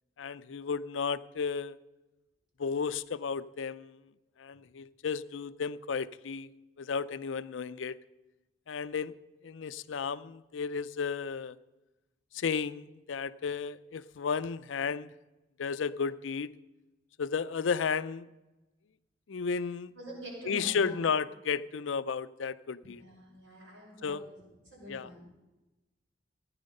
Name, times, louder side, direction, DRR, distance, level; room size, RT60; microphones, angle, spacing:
voice 1, 0.2-1.8 2.6-4.0 4.4-6.5 6.8-8.0 8.7-9.1 9.4-11.6 12.3-15.1 15.6-16.5 17.2-18.3 19.3-19.9 20.5-23.0 24.0-24.2 24.9-25.1, left 5 dB, 75° left, 15 dB, 0.5 m, -33 dB
voice 2, 19.9-21.0 22.8-25.2, equal, 75° right, -3 dB, 5.9 m, -45 dB
15.5 x 9.8 x 5.3 m, 1.1 s
head